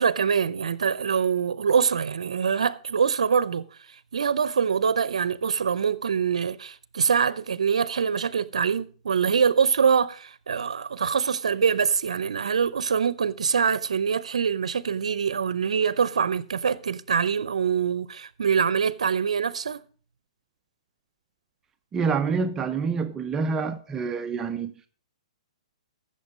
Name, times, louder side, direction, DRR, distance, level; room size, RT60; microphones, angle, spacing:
voice 1, 0.0-3.6 4.1-19.8, right 6 dB, 85° right, 0.6 m, -24 dB
voice 2, 21.9-24.7, right 5 dB, 15° right, 0.5 m, -27 dB
14.5 x 6.6 x 5.1 m
hypercardioid pair, 140°, 3 cm